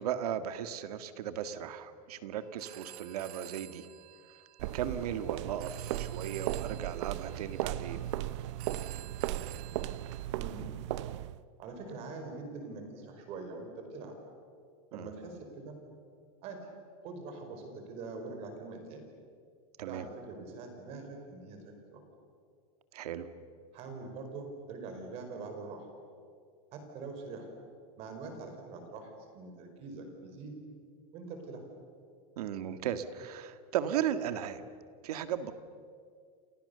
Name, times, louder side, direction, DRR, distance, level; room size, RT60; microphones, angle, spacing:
voice 1, 0.0-3.9 4.7-8.1 14.9-15.1 19.8-20.0 22.9-23.3 32.4-34.6 35.0-35.5, right 9 dB, 90° right, 10 dB, 1.9 m, -36 dB
Telephone, 2.4-10.3, right 15 dB, 70° right, 1.4 m, -51 dB
sound 1, 4.6-11.4, right 13 dB, 50° right, 0.8 m, -36 dB
voice 2, 10.4-10.7 11.6-14.2 14.9-15.8 16.4-16.7 17.0-19.0 19.8-22.0 23.7-25.9 26.7-27.5 28.0-30.6 31.1-31.6, right 3 dB, 30° right, 5 dB, 4.8 m, -44 dB
29.0 x 28.5 x 6.9 m, 2.1 s
supercardioid pair, 180°, 19 cm